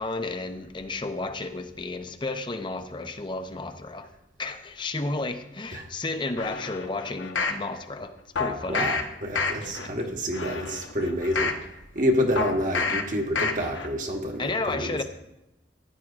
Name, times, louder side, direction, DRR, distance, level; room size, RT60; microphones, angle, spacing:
voice 1, 0.0-4.1 4.4-9.0 9.7-9.9 14.4-15.0, left 2 dB, 25° left, 8 dB, 0.6 m, -32 dB
sound 1, 6.4-7.6 8.4-9.0 9.3-9.9 10.3-11.6 12.4-13.0 13.4-13.9 14.3-14.4, left 4 dB, 80° left, 1.0 m, -29 dB
voice 2, 8.7-11.5 11.9-15.0, equal, 45° right, 2 dB, 1.3 m, -28 dB
15.0 x 9.9 x 2.5 m, 0.92 s
head